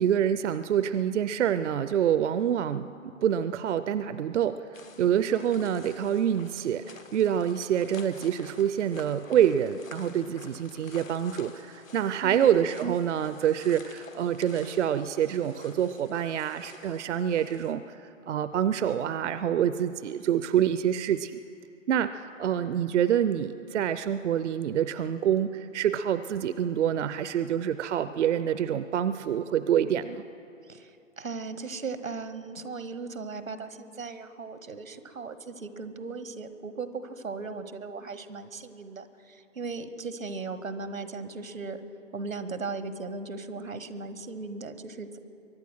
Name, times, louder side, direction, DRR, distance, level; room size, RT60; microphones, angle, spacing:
voice 1, 0.0-2.9 3.2-4.6 5.0-6.9 7.1-17.8 18.3-21.3 21.9-30.2, right 9 dB, 60° right, 13 dB, 0.5 m, -26 dB
sound 1, 4.7-17.7, left 5 dB, 80° left, 1.5 m, -50 dB
voice 2, 12.2-12.5 30.6-41.8 42.1-45.2, right 4 dB, 90° right, 12 dB, 1.2 m, -37 dB
23.0 x 9.5 x 6.3 m, 2.6 s
figure-of-eight pair, 130°, 39 cm